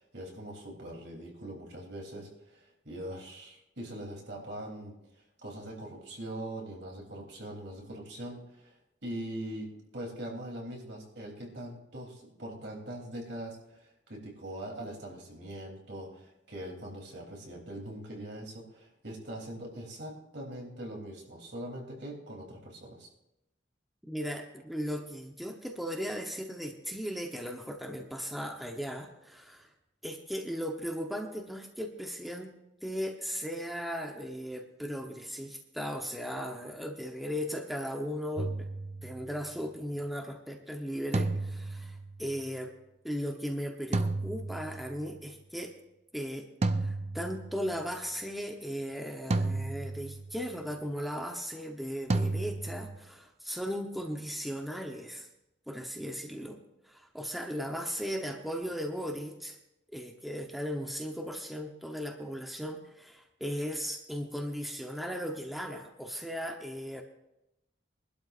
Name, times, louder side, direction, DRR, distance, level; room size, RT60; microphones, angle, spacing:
voice 1, 0.0-4.9 5.4-8.7 9.0-23.1, right 1 dB, 70° right, -1 dB, 3.2 m, -42 dB
voice 2, 24.0-29.7 30.0-32.5 32.8-38.7 39.0-42.7 43.0-45.8 46.1-46.5 46.8-55.3 55.7-56.6 56.8-59.6 59.9-67.0, equal, ahead, 2 dB, 0.8 m, -37 dB
sound 1, 38.4-39.4 41.1-42.3 43.9-45.1 46.6-47.8 49.3-50.5 52.1-53.0, right 2 dB, 35° right, 0.5 m, -32 dB
23.5 x 12.0 x 2.5 m, 0.87 s
head